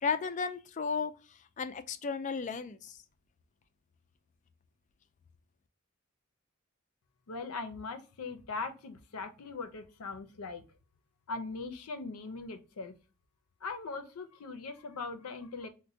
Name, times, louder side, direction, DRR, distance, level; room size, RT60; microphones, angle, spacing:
voice 1, 0.0-1.1 1.6-3.0, left 5 dB, 35° left, 0.3 m, -34 dB
voice 2, 7.3-10.6 11.3-12.9 13.6-15.7, left 3 dB, 90° left, 0.6 m, -40 dB
4.2 x 2.1 x 2.6 m
head